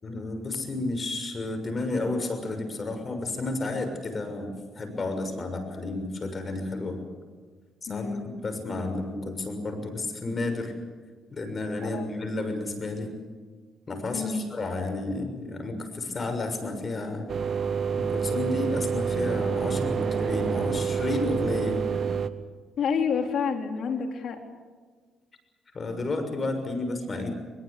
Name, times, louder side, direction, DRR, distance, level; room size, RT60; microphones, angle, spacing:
voice 1, 0.0-7.0 7.8-10.7 11.3-13.2 13.9-17.3 17.9-22.1 25.7-27.3, left 2 dB, 35° left, 7 dB, 6.5 m, -31 dB
voice 2, 7.9-8.4 11.8-12.1 14.1-14.4 22.8-24.4, left 6 dB, 65° left, 4 dB, 4.0 m, -29 dB
sound 1, 17.3-22.3, right 6 dB, 50° right, 1.4 m, -28 dB
22.5 x 22.0 x 8.6 m, 1.5 s
cardioid pair, 90°, 0 cm